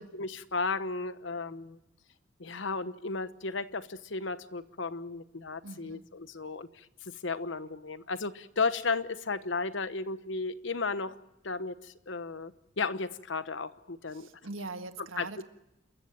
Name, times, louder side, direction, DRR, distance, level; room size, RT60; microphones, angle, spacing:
voice 1, 0.0-1.8 2.4-11.1 11.4-14.3 15.2-15.4, left 4 dB, 65° left, 13 dB, 1.1 m, -34 dB
voice 2, 5.6-6.0 14.1-15.4, right 3 dB, 90° right, 9 dB, 1.6 m, -42 dB
27.5 x 15.0 x 8.9 m, 0.87 s
head